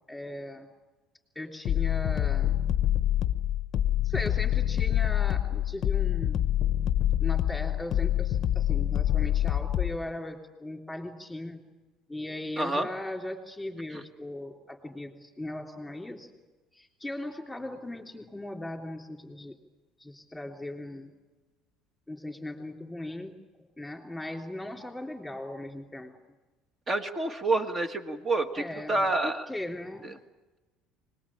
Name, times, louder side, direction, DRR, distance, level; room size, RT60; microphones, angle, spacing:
voice 1, 0.1-0.7 1.4-2.6 4.0-6.5 7.2-11.6 12.1-16.3 16.7-19.6 20.0-21.1 22.1-23.3 23.8-26.1 28.5-30.1, left 1 dB, 5° left, 2 dB, 3.5 m, -38 dB
sound 1, 1.7-10.0, left 12 dB, 40° left, 0.9 m, -26 dB
voice 2, 12.6-12.9 13.9-14.0 26.9-29.5 30.0-30.1, right 2 dB, 20° right, 7 dB, 1.7 m, -28 dB
25.5 x 20.0 x 8.8 m, 1.2 s
cardioid pair, 155°, 0 cm